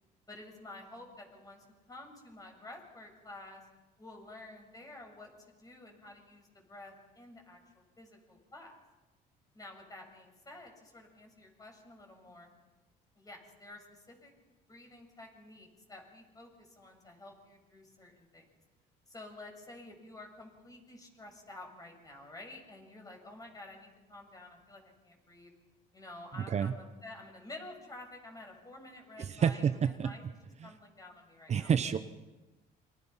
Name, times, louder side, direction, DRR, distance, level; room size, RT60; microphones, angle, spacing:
voice 1, 0.3-3.6 4.0-7.6 8.0-8.8 9.5-12.5 13.2-14.3 14.7-18.5 19.1-25.5 25.9-29.7 30.0-30.2 30.6-31.7, left 2 dB, 20° left, 2 dB, 7.1 m, -50 dB
voice 2, 29.2-30.1 30.6-30.7 31.5-32.0, right 7 dB, 40° right, 10 dB, 1.0 m, -29 dB
29.0 x 25.5 x 5.8 m, 1.1 s
cardioid pair, 110°, 17 cm